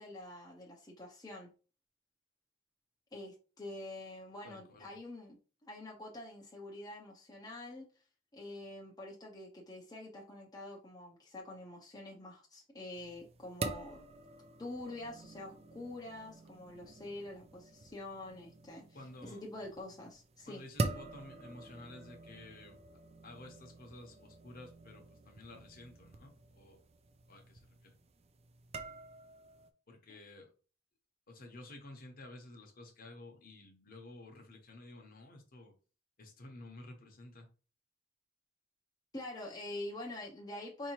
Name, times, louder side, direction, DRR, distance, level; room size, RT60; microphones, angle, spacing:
voice 1, 0.0-1.5 3.1-5.4 5.6-7.9 8.3-14.0 14.6-18.8 19.2-20.6 30.1-30.2 39.1-40.9, left 1 dB, 20° left, 0.6 m, -46 dB
voice 2, 4.4-4.9 18.9-19.4 20.5-22.8 23.2-26.8 27.3-28.0 29.9-30.5 31.3-35.7 36.2-37.5, left 2 dB, 45° left, 0.9 m, -52 dB
sound 1, 13.0-29.7, right 3 dB, 30° right, 0.4 m, -45 dB
4.5 x 2.7 x 3.0 m
head